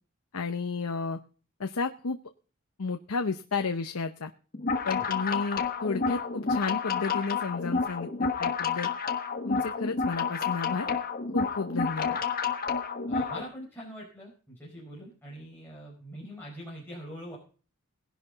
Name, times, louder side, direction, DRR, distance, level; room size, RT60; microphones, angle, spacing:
voice 1, 0.3-1.2 1.6-2.2 2.8-4.3 4.8-8.9 9.4-10.9 11.3-12.2, left 4 dB, 80° left, 7 dB, 0.8 m, -32 dB
sound 1, 4.5-13.4, left 5 dB, 45° left, 1.3 m, -30 dB
voice 2, 13.1-17.4, equal, 10° left, -4 dB, 4.5 m, -43 dB
18.5 x 11.0 x 4.0 m, 0.40 s
head